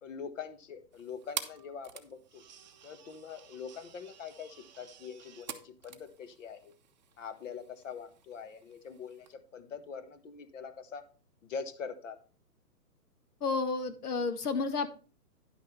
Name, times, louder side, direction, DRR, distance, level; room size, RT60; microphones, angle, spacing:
voice 1, 0.0-2.4 2.8-6.7 7.2-11.0 11.4-12.2, left 6 dB, 50° left, 10 dB, 1.5 m, -43 dB
sound 1, 0.9-9.3, right 9 dB, 30° right, 0.7 m, -48 dB
voice 2, 13.4-14.9, left 4 dB, 70° left, 8 dB, 2.0 m, -31 dB
10.5 x 6.1 x 4.3 m, 0.36 s
hypercardioid pair, 160°, 48 cm